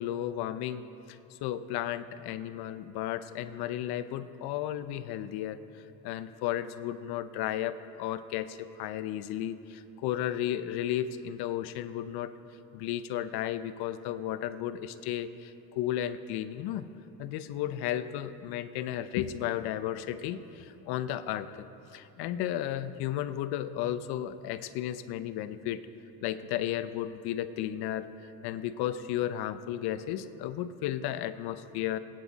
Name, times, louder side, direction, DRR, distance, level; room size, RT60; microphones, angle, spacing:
voice 1, 0.0-5.6 6.0-12.3 12.7-16.9 17.2-21.7 21.9-25.9 26.2-28.1 28.4-32.0, left 11 dB, 70° left, 12 dB, 0.8 m, -34 dB
25.5 x 9.4 x 4.1 m, 3.0 s
supercardioid pair, 90°, 39 cm